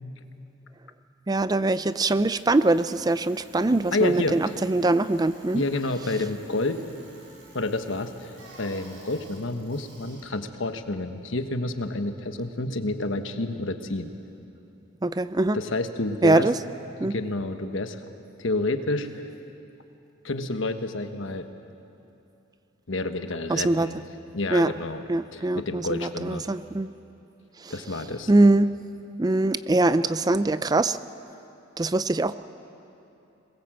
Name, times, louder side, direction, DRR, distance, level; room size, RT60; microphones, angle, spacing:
voice 1, 1.3-5.6 15.0-15.6 16.2-16.5 17.0-17.1 23.5-23.9 24.5-24.7 25.1-26.9 27.6-27.7 28.3-28.7 29.2-31.0 31.8-32.3, right 2 dB, 20° right, 14 dB, 0.4 m, -22 dB
Bicycle, 1.5-11.5, right 1 dB, 65° right, 6.9 m, -52 dB
voice 2, 3.9-4.5 5.5-6.8 7.5-14.1 15.5-16.5 17.0-18.0 18.4-19.1 20.2-21.5 22.9-24.0 24.3-25.0 25.3-26.4 27.7-28.3, left 2 dB, 75° left, 8 dB, 1.3 m, -29 dB
22.0 x 20.5 x 7.7 m, 2.8 s
head